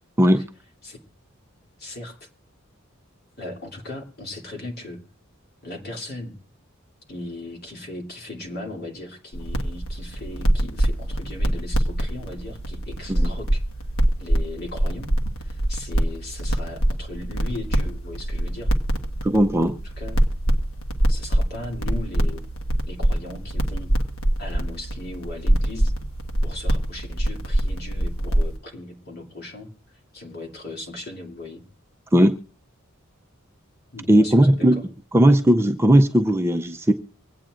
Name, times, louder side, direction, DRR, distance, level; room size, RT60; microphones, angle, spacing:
voice 1, 1.8-2.3 3.4-5.0 5.6-6.3 7.1-13.6 14.2-15.1 15.4-18.7 19.8-20.2 21.1-22.4 22.8-24.1 24.4-25.9 26.4-31.6 33.9-34.8, left 2 dB, 50° left, 1 dB, 2.6 m, -37 dB
sound 1, 9.3-28.6, right 1 dB, 90° left, 1.3 m, -24 dB
voice 2, 19.2-19.8 32.1-32.4 34.1-34.8 35.1-36.9, right 1 dB, 10° right, 5 dB, 0.5 m, -17 dB
24.5 x 8.8 x 2.5 m, 0.39 s
head